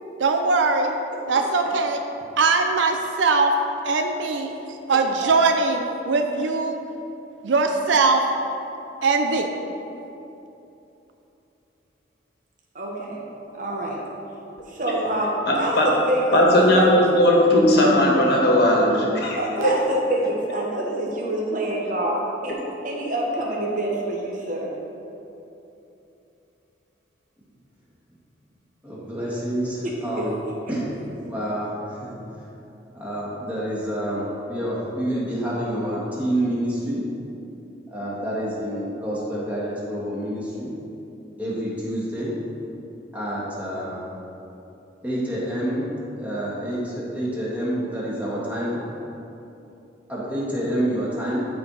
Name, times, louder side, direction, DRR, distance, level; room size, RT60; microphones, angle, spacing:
voice 1, 0.2-1.0 1.3-2.0 2.4-3.5 3.8-4.5 4.9-6.8 7.4-8.2 9.0-9.5, right 4 dB, 80° right, 4 dB, 0.5 m, -21 dB
voice 2, 12.7-13.2 13.5-14.0 14.7-15.3 15.6-16.4 19.4-19.8 20.1-22.6 22.8-24.7 29.8-30.3, right 1 dB, 45° right, -3 dB, 1.2 m, -26 dB
voice 3, 15.4-15.9 16.3-19.8, left 1 dB, 55° left, -2 dB, 1.5 m, -18 dB
voice 4, 28.8-30.4 30.7-30.9 31.2-32.1 32.9-37.0 37.9-40.7 41.4-42.3 43.1-44.0 45.0-45.9 46.2-48.8 50.1-51.5, right 1 dB, 10° right, -7 dB, 1.8 m, -28 dB
13.0 x 4.6 x 4.1 m, 2.9 s
head